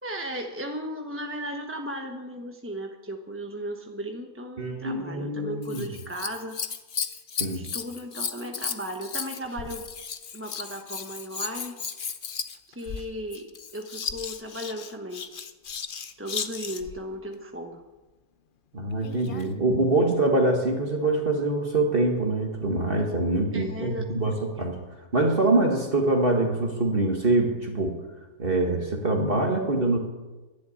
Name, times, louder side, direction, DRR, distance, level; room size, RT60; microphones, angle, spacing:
voice 1, 0.0-6.6 7.5-9.9 10.3-11.8 12.4-13.5 13.7-15.2 16.2-17.8 23.5-24.5, equal, 10° right, 2 dB, 0.9 m, -36 dB
voice 2, 4.6-5.8 7.4-7.7 18.7-24.8 25.1-27.9 28.4-30.0, right 2 dB, 35° right, 1 dB, 2.0 m, -24 dB
Scissors, 5.6-17.0 18.9-19.5 20.3-20.4, left 6 dB, 45° left, 0.8 m, -35 dB
12.0 x 10.5 x 9.8 m, 1.2 s
omnidirectional pair, 1.6 m